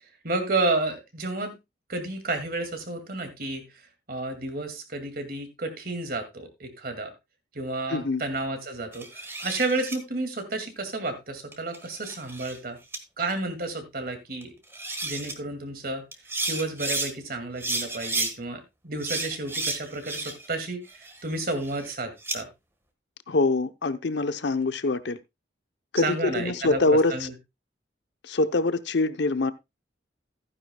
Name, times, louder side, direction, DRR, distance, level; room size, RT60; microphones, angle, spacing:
voice 1, 0.2-1.5 1.9-3.6 4.1-7.1 7.5-12.8 13.2-14.5 15.0-16.0 16.5-22.5 26.0-27.3, right 2 dB, 50° right, 2.2 m, -31 dB
voice 2, 7.9-8.2 23.3-25.2 25.9-27.3 28.2-29.5, left 2 dB, 65° left, 0.7 m, -24 dB
sound 1, 8.9-10.0 11.5-12.6 12.9-13.0 14.4-14.5 14.7-15.3 16.1-17.1 17.6-18.3 19.0-20.5 20.9-22.4, right 2 dB, 15° right, 1.4 m, -32 dB
15.0 x 9.7 x 2.2 m
head